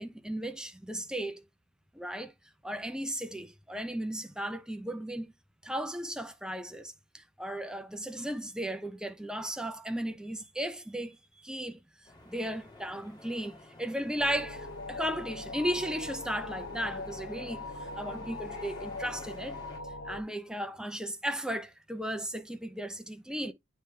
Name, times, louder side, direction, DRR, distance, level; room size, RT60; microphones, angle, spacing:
voice 1, 0.0-1.4 1.9-2.3 2.6-5.3 5.6-11.2 11.4-11.8 12.2-19.6 20.0-23.5, equal, 5° right, 0.7 m, -35 dB
sound 1, 12.0-19.8, left 1 dB, 20° left, 1.7 m, -52 dB
sound 2, 14.2-20.2, left 3 dB, 60° left, 0.9 m, -41 dB
9.3 x 3.3 x 3.4 m
head